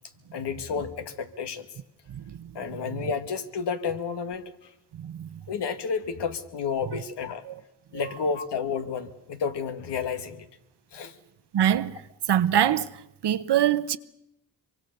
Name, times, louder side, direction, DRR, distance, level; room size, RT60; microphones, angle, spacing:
voice 1, 0.3-1.7 2.6-4.7 5.5-7.4 7.9-10.5 10.9-11.2, left 6 dB, 85° left, 1.8 m, -31 dB
voice 2, 5.0-5.3 7.5-7.6 11.5-12.0 12.3-12.9 13.2-14.0, right 10 dB, 80° right, 1.0 m, -23 dB
25.0 x 24.0 x 6.7 m
cardioid pair, 70°, 40 cm